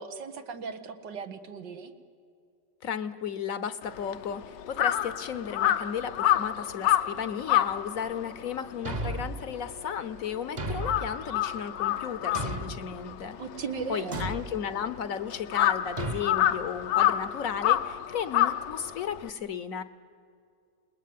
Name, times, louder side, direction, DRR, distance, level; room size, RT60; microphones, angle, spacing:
voice 1, 0.0-1.9 13.4-14.3, right 5 dB, 85° right, 8 dB, 2.1 m, -37 dB
voice 2, 2.8-13.4 13.9-19.8, left 7 dB, 60° left, 14 dB, 1.1 m, -34 dB
Crow, 3.8-10.4 10.7-19.3, left 12 dB, 85° left, 1.5 m, -28 dB
Thump thud, 8.8-9.5 10.6-11.2 12.3-12.9 14.1-14.5 16.0-16.3, right 1 dB, 30° right, 1.0 m, -33 dB
28.0 x 20.5 x 9.4 m, 2.4 s
omnidirectional pair, 1.8 m